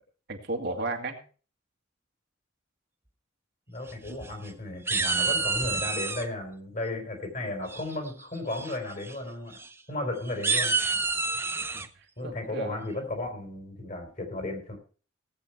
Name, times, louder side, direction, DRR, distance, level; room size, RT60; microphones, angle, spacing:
voice 1, 0.3-1.2 4.1-4.2 7.4-7.5 11.7-12.9, right 2 dB, 60° right, 3 dB, 2.1 m, -35 dB
voice 2, 3.7-9.6 9.9-10.8 12.2-14.8, left 2 dB, 45° left, 3 dB, 4.2 m, -34 dB
sound 1, 3.9-4.5 4.9-6.2 7.7-8.1 8.5-8.7 9.0-9.1 9.5-9.7 10.3-11.9, right 4 dB, 15° right, 0.7 m, -28 dB
17.0 x 8.3 x 4.6 m, 0.39 s
head